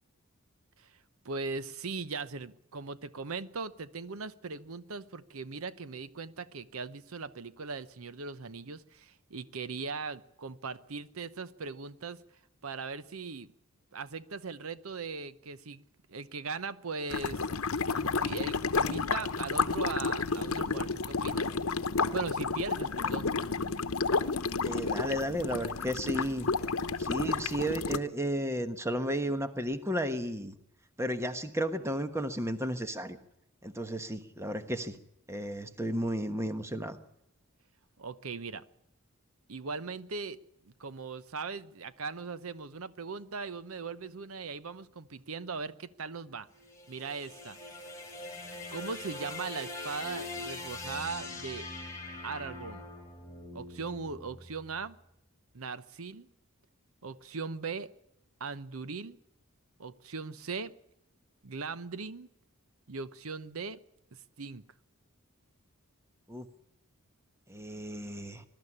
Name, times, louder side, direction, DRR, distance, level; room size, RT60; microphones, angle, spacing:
voice 1, 1.2-12.2 12.6-13.5 13.9-15.8 16.1-17.5 17.9-21.5 22.1-23.3 38.0-38.6 39.5-40.4 40.8-46.5 46.9-47.6 48.7-51.7 52.2-52.9 53.5-55.0 55.5-56.3 57.0-57.9 58.4-59.2 59.8-60.7 61.4-62.3 62.9-63.8 64.4-64.6, right 4 dB, 75° right, 15 dB, 0.8 m, -39 dB
sound 1, 17.1-28.0, left 4 dB, 75° left, 1.0 m, -31 dB
voice 2, 24.6-26.5 27.0-30.5 31.0-33.2 33.6-35.0 35.3-37.0 66.3-66.5 67.5-68.4, equal, 10° right, 9 dB, 1.2 m, -33 dB
sound 2, 46.5-54.8, left 2 dB, 15° left, 4.9 m, -42 dB
21.5 x 12.5 x 9.9 m, 0.80 s
head